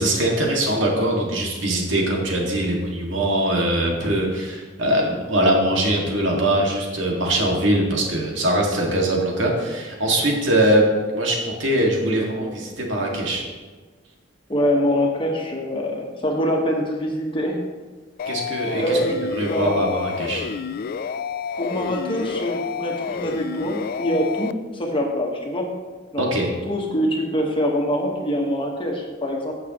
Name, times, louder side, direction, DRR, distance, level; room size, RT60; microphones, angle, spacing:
voice 1, 0.0-10.9 11.1-13.4 18.3-19.0 19.3-20.5 26.2-26.5, right 1 dB, 85° right, -1 dB, 2.0 m, -22 dB
voice 2, 14.5-17.6 18.7-19.2 19.5-19.8 21.6-25.7 26.1-26.4 26.7-29.5, equal, 30° left, 0 dB, 1.4 m, -24 dB
sound 1, 18.2-24.5, left 6 dB, 50° left, 0.3 m, -29 dB
15.0 x 6.7 x 3.0 m, 1.3 s
head